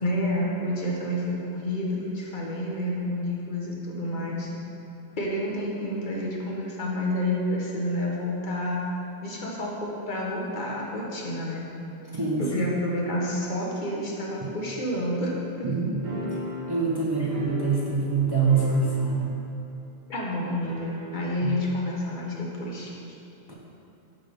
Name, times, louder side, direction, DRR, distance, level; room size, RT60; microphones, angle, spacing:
voice 1, 0.0-4.5 5.2-8.8 9.2-11.7 12.4-15.3 15.6-15.7 20.1-22.9, left 1 dB, 50° left, -4 dB, 1.1 m, -29 dB
voice 2, 12.1-12.5 14.4-14.5 15.6-16.0 16.7-19.3 21.4-21.6 23.5-23.6, right 4 dB, 30° right, -5 dB, 0.5 m, -25 dB
sound 1, 16.0-18.2 18.4-19.5 19.7-19.8 20.6-21.4, equal, 45° right, 1.4 m, -36 dB
7.3 x 3.4 x 5.2 m, 2.8 s
omnidirectional pair, 1.1 m